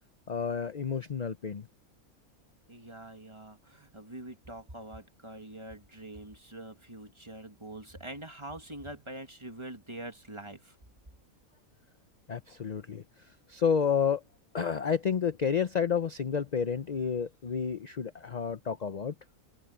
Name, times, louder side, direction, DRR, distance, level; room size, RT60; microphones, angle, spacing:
voice 1, 0.3-1.7 12.3-13.0 13.5-14.2 14.5-19.1, left 7 dB, 40° left, 0.6 m, -30 dB
voice 2, 2.7-10.8, right 1 dB, 20° right, 1.9 m, -44 dB
omnidirectional pair, 1.5 m